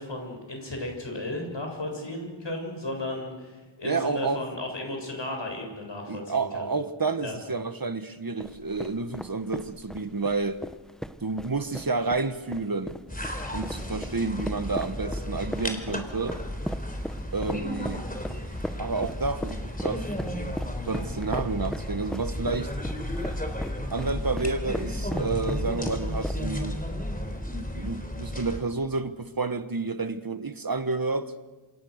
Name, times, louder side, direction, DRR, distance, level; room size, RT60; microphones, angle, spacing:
voice 1, 0.0-6.7 7.2-7.4, left 1 dB, 70° left, 7.6 m, -34 dB
voice 2, 3.8-4.4 6.1-10.6 11.2-13.0 13.5-16.4 17.3-18.1 18.8-20.1 20.9-22.7 23.9-26.8 27.8-31.3, right 3 dB, 50° right, 1.4 m, -30 dB
sound 1, 8.4-26.7, equal, ahead, 1.3 m, -38 dB
sound 2, 13.1-28.6, left 1 dB, 20° left, 4.2 m, -33 dB
27.5 x 27.0 x 6.6 m
wide cardioid pair, 45°, 45 cm